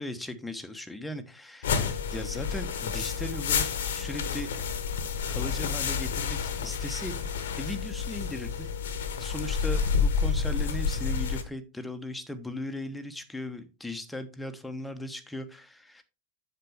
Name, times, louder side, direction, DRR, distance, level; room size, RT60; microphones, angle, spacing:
voice 1, 0.0-4.5 5.3-7.2 7.6-8.7 9.2-16.0, left 1 dB, 5° left, 8 dB, 1.0 m, -38 dB
sound 1, 1.6-11.4, left 6 dB, 60° left, 1.0 m, -29 dB
7.8 x 6.9 x 3.4 m, 0.30 s
figure-of-eight pair, 90°, 0 cm